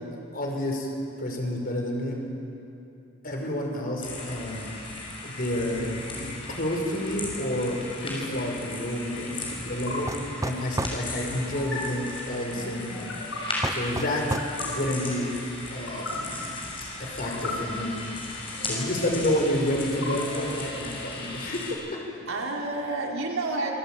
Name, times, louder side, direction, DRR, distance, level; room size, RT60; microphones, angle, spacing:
voice 1, 0.3-0.9 1.2-2.2 3.2-4.7 5.2-5.9 6.6-9.3 9.7-10.1 10.4-13.1 13.7-14.2 14.6-15.3 15.7-16.3 17.0-18.0 18.6-21.8, left 1 dB, 45° left, 0 dB, 5.5 m, -29 dB
sound 1, 4.0-21.7, left 2 dB, 25° left, 6.8 m, -37 dB
sound 2, 6.0-6.3 8.0-8.3 9.7-9.9 11.5-11.8 12.9-13.4 14.2-14.7 15.7-16.1 17.1-17.5 18.5-19.1 19.8-20.7, left 3 dB, 65° left, 7.4 m, -38 dB
sound 3, 10.1-11.0 13.6-14.6, right 1 dB, 15° right, 0.7 m, -30 dB
voice 2, 22.3-23.8, right 2 dB, 80° right, -2 dB, 4.3 m, -30 dB
27.5 x 18.0 x 9.2 m, 2.8 s
head